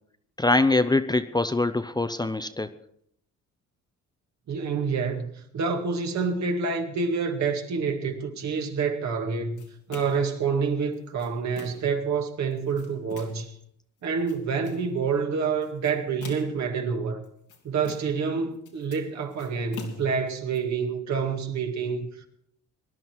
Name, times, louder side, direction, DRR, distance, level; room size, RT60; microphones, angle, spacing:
voice 1, 0.4-2.7, left 2 dB, 15° left, 10 dB, 0.7 m, -23 dB
voice 2, 4.5-9.6 9.9-13.5 14.0-17.2 17.6-22.3, right 5 dB, 65° right, 4 dB, 2.1 m, -28 dB
sound 1, 9.6-10.3 10.9-12.0 12.5-13.5 14.0-14.9 15.6-16.7 17.2-18.3 18.5-20.6, left 6 dB, 85° left, 2.6 m, -45 dB
19.5 x 11.0 x 4.6 m, 0.70 s
cardioid pair, 90°, 30 cm